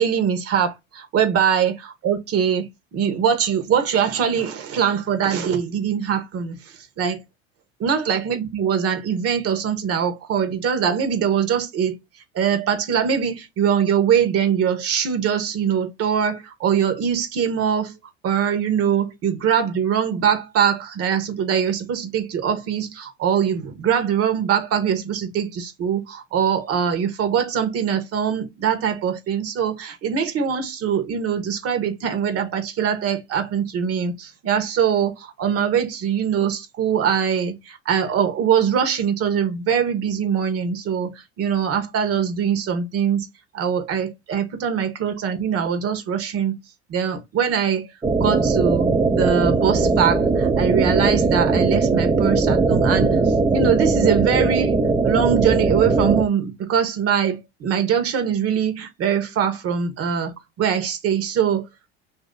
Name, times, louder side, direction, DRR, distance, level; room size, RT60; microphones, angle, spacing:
voice 1, 0.0-2.7 2.9-7.2 7.8-12.0 12.3-17.9 18.2-43.3 43.5-46.5 46.9-54.7 55.0-61.7, right 8 dB, 50° right, 1.1 m, -22 dB
sound 1, 48.0-56.2, right 3 dB, 15° right, 0.5 m, -19 dB
2.9 x 2.7 x 3.7 m
hypercardioid pair, 80°, 32 cm